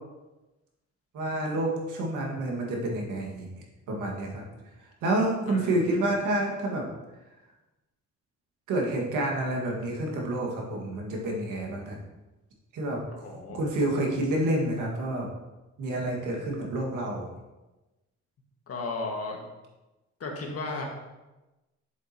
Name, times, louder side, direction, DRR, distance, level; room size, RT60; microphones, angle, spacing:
voice 1, 1.1-3.5 3.9-4.4 5.0-6.8 8.7-12.0 12.7-13.0 13.5-15.3 15.8-17.3, right 1 dB, 85° right, -1 dB, 1.9 m, -28 dB
voice 2, 5.5-5.8 13.1-13.7 18.7-19.5 20.2-20.9, left 3 dB, 50° left, 0 dB, 1.8 m, -35 dB
7.5 x 7.3 x 2.9 m, 1.1 s
cardioid pair, 90°, 30 cm